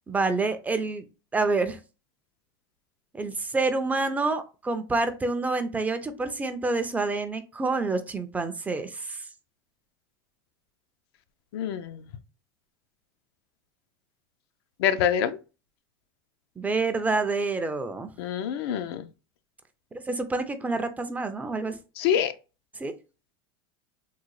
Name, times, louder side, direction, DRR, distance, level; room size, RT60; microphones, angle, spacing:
voice 1, 0.1-1.0 1.3-1.8 3.1-9.2 16.6-18.1 19.9-21.8 22.8-22.9, right 3 dB, 10° right, 0.3 m, -28 dB
voice 2, 11.5-12.0 14.8-15.4 18.2-19.1 22.0-22.3, left 9 dB, 75° left, 0.4 m, -26 dB
3.7 x 2.0 x 3.1 m
supercardioid pair, 130°, 13 cm